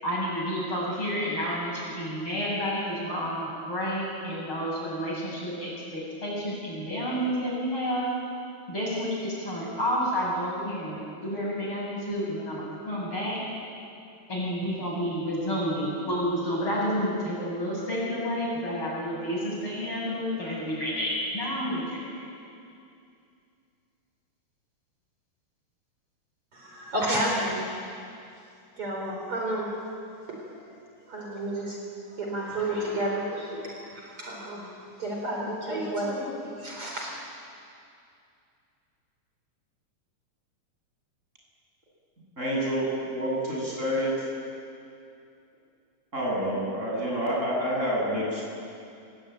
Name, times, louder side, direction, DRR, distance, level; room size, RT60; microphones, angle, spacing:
voice 1, 0.0-8.1 8.7-13.4 14.3-22.0, equal, 40° left, -4 dB, 8.9 m, -30 dB
voice 2, 26.5-27.9 28.8-29.7 30.3-30.7 31.1-31.8 32.1-34.7 35.0-37.1, right 1 dB, 45° right, -1 dB, 5.0 m, -31 dB
voice 3, 42.4-44.1 46.1-48.4, equal, 20° right, -4 dB, 8.1 m, -28 dB
29.0 x 20.0 x 9.3 m, 2.5 s
omnidirectional pair, 3.5 m